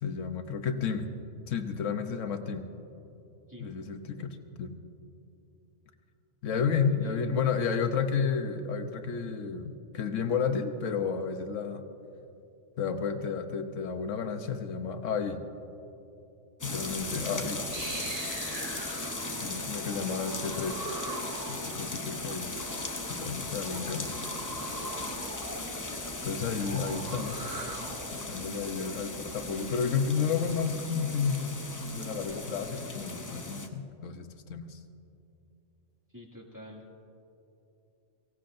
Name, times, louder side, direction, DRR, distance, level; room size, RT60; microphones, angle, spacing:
voice 1, 0.0-1.1 1.5-2.6 3.6-4.7 6.4-11.8 12.8-15.4 16.6-17.6 19.4-20.8 21.5-22.5 23.1-24.2 26.2-27.5 28.1-31.4 32.0-34.8, left 6 dB, 85° left, 7 dB, 1.2 m, -31 dB
voice 2, 3.5-3.9 7.0-7.4 19.1-19.6 36.1-36.8, equal, 15° right, -3 dB, 2.2 m, -48 dB
sound 1, 16.6-33.7, left 2 dB, 20° left, 0.6 m, -38 dB
sound 2, 17.3-28.3, right 2 dB, 30° right, 1.1 m, -42 dB
sound 3, 22.4-29.7, equal, ahead, 1.1 m, -53 dB
23.0 x 17.0 x 2.6 m, 2.9 s
omnidirectional pair, 1.3 m